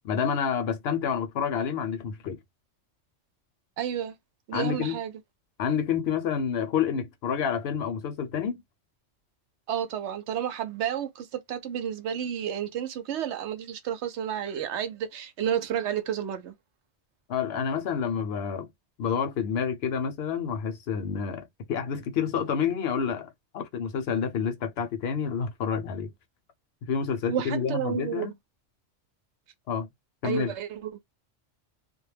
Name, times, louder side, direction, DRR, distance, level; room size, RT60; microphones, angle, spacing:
voice 1, 0.0-2.4 4.5-5.0 5.6-8.6 17.3-18.7 19.0-26.1 26.9-28.3 29.7-29.9 30.2-30.5, left 7 dB, 65° left, 0.8 m, -28 dB
voice 2, 3.8-4.2 4.5-5.1 9.7-16.6 27.3-28.3 30.2-31.0, right 9 dB, 70° right, 0.8 m, -31 dB
2.2 x 2.1 x 3.1 m
omnidirectional pair, 1.3 m